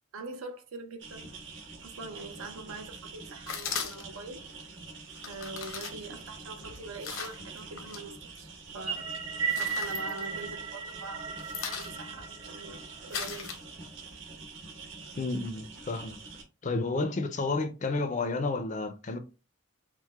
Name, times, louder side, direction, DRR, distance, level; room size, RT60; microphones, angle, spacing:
voice 1, 0.1-1.3 1.8-4.5 5.3-9.1 9.6-13.6, right 3 dB, 85° right, 0.6 m, -43 dB
sound 1, 1.0-16.4, right 4 dB, 60° right, 1.0 m, -46 dB
sound 2, 3.5-4.3 5.1-8.0 8.4-9.0 9.3-10.8 11.1-14.1, left 6 dB, 75° left, 0.7 m, -39 dB
sound 3, 8.7-13.2, right 5 dB, 35° right, 0.7 m, -36 dB
voice 2, 15.2-16.2 16.6-19.2, left 3 dB, 35° left, 0.4 m, -31 dB
4.5 x 2.0 x 2.3 m
head